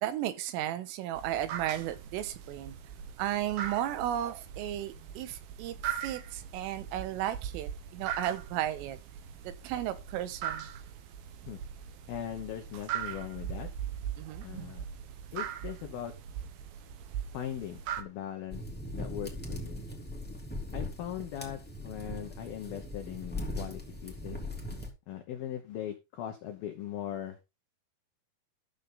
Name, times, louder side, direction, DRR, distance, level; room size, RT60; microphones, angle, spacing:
voice 1, 0.0-2.8 3.2-9.0 9.5-10.7 14.2-14.8, right 12 dB, 90° right, 3.6 m, -34 dB
sound 1, 1.1-18.0, right 9 dB, 70° right, 2.3 m, -40 dB
voice 2, 12.1-13.7 14.4-14.9 15.3-16.1 17.3-18.6 19.0-19.8 20.7-24.4 25.1-27.4, left 10 dB, 75° left, 2.2 m, -39 dB
sound 2, 18.5-24.9, left 1 dB, 5° left, 1.1 m, -39 dB
13.0 x 6.8 x 3.8 m
omnidirectional pair, 5.7 m